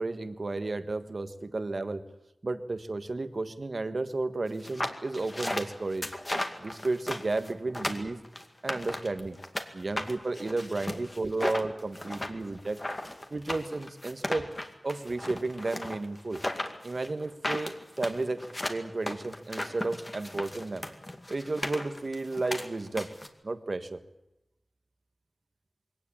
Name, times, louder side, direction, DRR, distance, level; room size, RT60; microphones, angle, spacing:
voice 1, 0.0-2.0 2.4-6.1 6.6-8.2 8.6-9.4 9.7-12.8 13.3-14.5 14.8-16.4 16.8-20.8 21.3-23.1 23.4-24.0, right 2 dB, 50° right, 10 dB, 1.5 m, -33 dB
sound 1, 4.6-9.7 10.0-23.3, left 1 dB, 25° left, 2.3 m, -35 dB
22.0 x 18.0 x 8.6 m, 0.95 s
wide cardioid pair, 75°, 0 cm